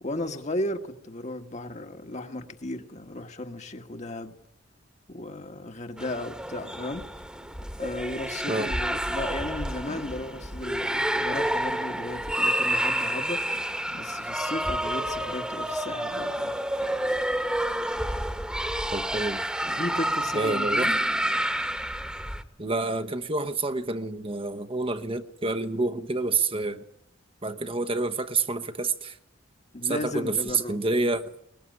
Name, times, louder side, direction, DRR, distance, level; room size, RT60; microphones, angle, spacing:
voice 1, 0.0-4.3 5.1-7.1 7.8-13.6 13.9-16.5 19.6-21.0 29.7-30.8, left 1 dB, 40° left, 1.6 m, -35 dB
sound 1, 6.0-22.4, right 1 dB, 5° right, 1.5 m, -29 dB
voice 2, 18.9-19.5 20.3-20.9 22.6-26.8 27.4-29.2 29.8-31.2, right 3 dB, 30° right, 1.1 m, -28 dB
22.0 x 20.5 x 9.4 m
head